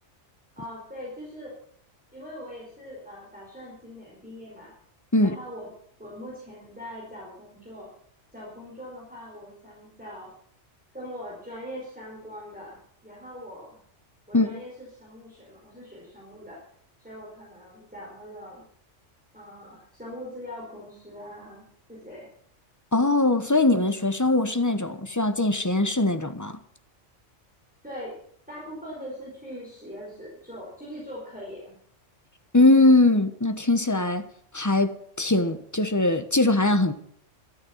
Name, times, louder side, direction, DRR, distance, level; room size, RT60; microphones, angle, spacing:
voice 1, 0.6-1.5 2.1-4.7 5.2-5.7 6.0-7.9 8.3-10.3 10.9-12.8 13.0-13.8 14.3-16.6 17.0-18.6 19.3-22.3 27.8-28.1 28.5-31.8, equal, 5° right, 4.9 m, -41 dB
voice 2, 22.9-26.6 32.5-34.3 34.5-36.9, left 2 dB, 15° left, 1.0 m, -21 dB
13.0 x 12.5 x 7.3 m
omnidirectional pair, 1.2 m